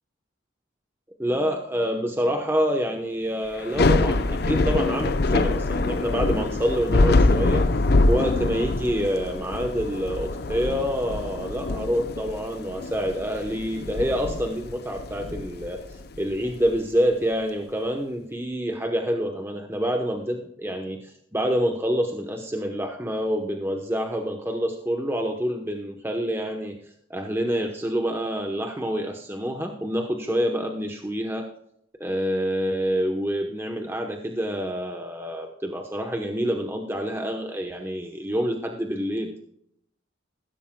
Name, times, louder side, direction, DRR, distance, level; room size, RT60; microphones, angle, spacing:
voice 1, 1.2-7.7 8.1-26.8 27.1-31.5 32.0-39.4, equal, 10° right, 3 dB, 0.9 m, -27 dB
Thunder / Rain, 3.6-16.8, left 2 dB, 50° left, 0.6 m, -24 dB
15.0 x 13.5 x 2.2 m, 0.71 s
head